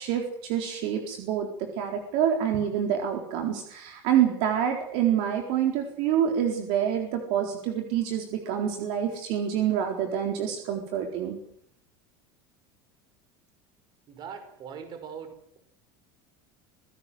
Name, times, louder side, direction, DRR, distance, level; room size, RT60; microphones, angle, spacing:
voice 1, 0.0-11.4, right 9 dB, 60° right, 3 dB, 4.1 m, -27 dB
voice 2, 14.1-15.6, right 7 dB, 35° right, 8 dB, 5.4 m, -41 dB
26.5 x 17.0 x 7.9 m, 0.71 s
supercardioid pair, 155°, 12 cm